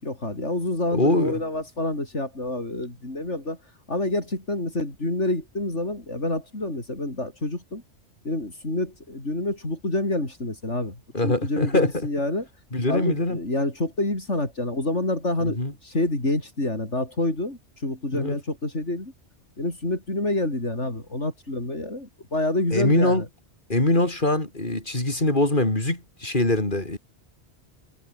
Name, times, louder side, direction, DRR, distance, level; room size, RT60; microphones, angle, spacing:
voice 1, 0.0-3.6 3.9-7.8 8.2-12.5 12.9-19.1 19.6-23.3, left 2 dB, 90° left, 6.4 m, -28 dB
voice 2, 0.9-1.4 11.1-11.9 12.7-13.4 15.4-15.7 18.1-18.3 22.7-23.2 23.7-27.0, left 2 dB, 45° left, 5.0 m, -23 dB
omnidirectional pair, 1.2 m